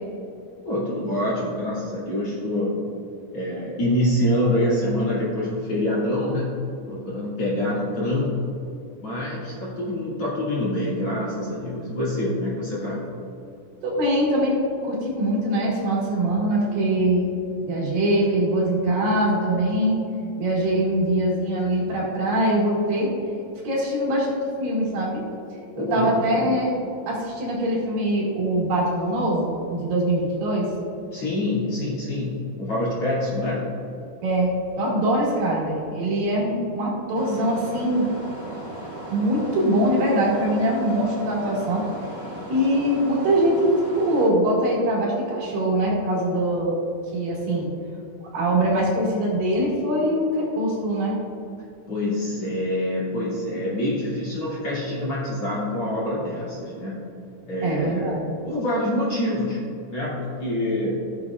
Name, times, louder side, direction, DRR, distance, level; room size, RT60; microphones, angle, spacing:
voice 1, 0.6-2.8 3.3-6.6 6.9-8.4 9.0-13.0 25.8-26.6 31.1-33.7 51.9-57.0 57.5-58.1 58.4-59.6 59.9-61.0, left 1 dB, 40° left, -9 dB, 2.9 m, -26 dB
voice 2, 13.8-14.5 14.8-17.3 17.7-20.0 20.4-23.1 23.6-25.2 25.8-26.7 27.1-30.7 34.2-38.1 39.1-41.8 42.5-46.8 47.1-47.7 48.2-51.2 57.6-58.3, right 1 dB, 65° right, -6 dB, 3.7 m, -23 dB
sound 1, 37.1-44.3, right 1 dB, 15° right, 1.1 m, -36 dB
16.0 x 7.0 x 2.4 m, 2.7 s
omnidirectional pair, 4.4 m